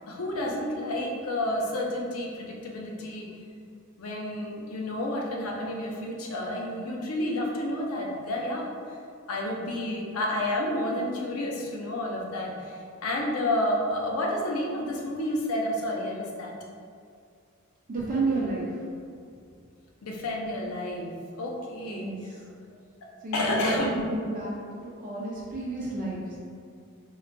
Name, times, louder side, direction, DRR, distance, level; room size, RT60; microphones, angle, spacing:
voice 1, 0.1-3.3 4.0-9.0 9.3-16.5 20.0-22.1 23.3-23.9, left 1 dB, 70° left, -1 dB, 0.5 m, -30 dB
voice 2, 17.9-18.8 21.9-22.4 23.2-24.5 24.8-26.4, right 2 dB, 40° right, -6 dB, 0.4 m, -31 dB
3.7 x 2.4 x 2.2 m, 2.3 s
head